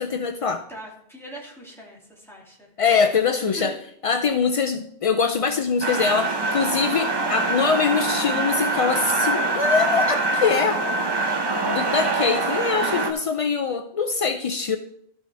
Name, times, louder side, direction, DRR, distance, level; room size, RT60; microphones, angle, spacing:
voice 1, 0.0-0.6 2.8-3.7 4.0-10.8 11.6-14.8, left 5 dB, 60° left, 7 dB, 0.3 m, -23 dB
voice 2, 0.7-2.7 3.6-3.8, right 1 dB, ahead, -4 dB, 2.4 m, -41 dB
sound 1, 5.8-13.1, right 2 dB, 25° right, 0.7 m, -24 dB
13.0 x 6.1 x 3.4 m, 0.69 s
omnidirectional pair, 1.1 m